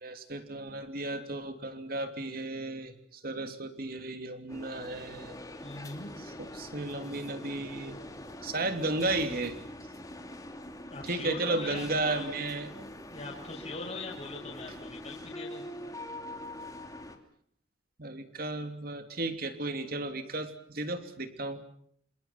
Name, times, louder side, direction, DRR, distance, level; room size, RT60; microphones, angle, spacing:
voice 1, 0.0-5.4 6.4-8.0 8.4-9.6 11.0-12.7 18.0-21.6, right 2 dB, 55° right, 7 dB, 3.1 m, -34 dB
sound 1, 4.5-17.2, left 1 dB, 20° left, 3.0 m, -44 dB
voice 2, 5.6-6.1 10.8-12.3 13.1-15.6, left 2 dB, 35° left, -2 dB, 6.4 m, -41 dB
28.0 x 26.5 x 6.0 m, 0.65 s
head